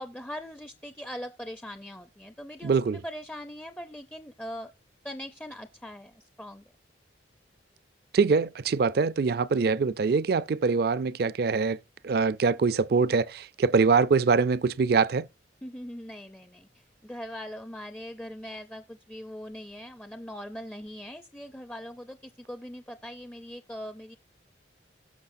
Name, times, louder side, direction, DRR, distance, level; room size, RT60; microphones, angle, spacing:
voice 1, 0.0-4.7 5.0-6.6 15.6-24.2, equal, 10° left, 0.4 m, -41 dB
voice 2, 2.6-3.0 8.1-11.8 12.0-15.3, right 4 dB, 55° right, 0.4 m, -24 dB
17.5 x 6.3 x 2.6 m
head